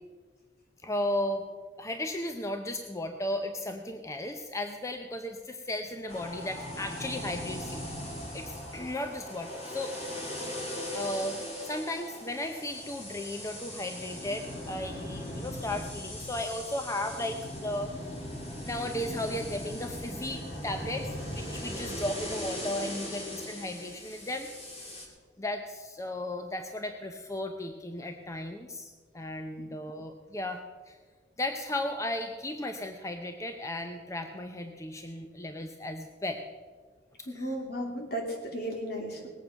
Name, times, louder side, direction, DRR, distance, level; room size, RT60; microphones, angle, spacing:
voice 1, 0.8-1.4 1.8-7.8 8.3-9.9 10.9-11.4 11.7-17.9 18.6-24.5 25.4-31.0 31.4-36.4 37.3-37.5, left 1 dB, 15° left, 5 dB, 0.7 m, -35 dB
sound 1, 6.1-25.1, left 1 dB, 35° left, 2.5 m, -39 dB
voice 2, 37.3-39.3, equal, 60° left, 1 dB, 2.8 m, -35 dB
19.5 x 8.5 x 5.7 m, 1.5 s
head